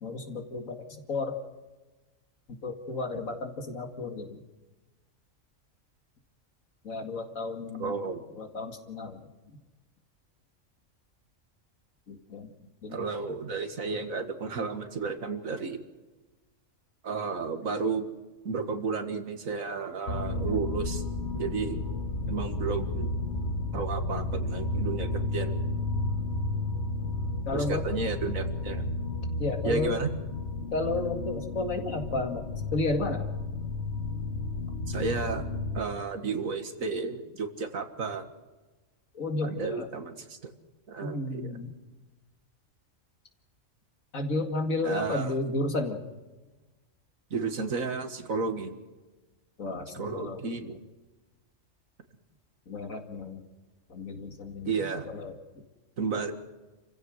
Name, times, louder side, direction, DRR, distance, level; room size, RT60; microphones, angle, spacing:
voice 1, 0.0-0.8 1.1-1.3 2.6-4.3 6.8-8.0 8.4-9.2 12.1-12.5 12.8-13.0 20.5-20.6 27.5-27.8 29.4-30.0 30.7-32.4 32.7-33.2 39.1-39.9 41.0-41.7 44.1-46.0 49.6-50.7 52.7-53.4 53.9-54.7 55.1-55.3, left 2 dB, 90° left, 5 dB, 2.6 m, -32 dB
voice 2, 7.8-8.2 12.9-15.8 17.0-18.1 18.4-21.0 21.3-21.8 22.3-23.1 23.7-25.6 27.5-28.9 29.6-30.1 34.9-35.4 35.7-38.2 39.4-40.5 40.9-41.5 44.8-45.3 47.3-48.8 49.9-50.8 54.7-55.1 56.0-56.3, right 4 dB, 90° right, 7 dB, 2.2 m, -32 dB
sound 1, 20.1-35.8, left 2 dB, 60° left, 1.5 m, -32 dB
28.5 x 15.5 x 6.4 m, 1.2 s
omnidirectional pair, 1.4 m